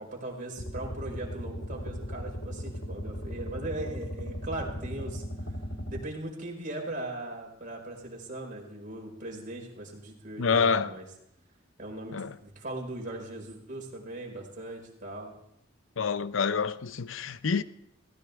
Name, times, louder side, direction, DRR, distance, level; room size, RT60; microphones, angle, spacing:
voice 1, 0.0-5.2 5.9-11.0 11.8-15.3, right 2 dB, 45° right, 5.2 m, -39 dB
sound 1, 0.6-6.1, equal, 70° left, 1.4 m, -37 dB
voice 2, 10.4-10.9 12.1-12.3 16.0-17.6, left 5 dB, 85° left, 0.7 m, -27 dB
22.5 x 17.5 x 3.6 m
head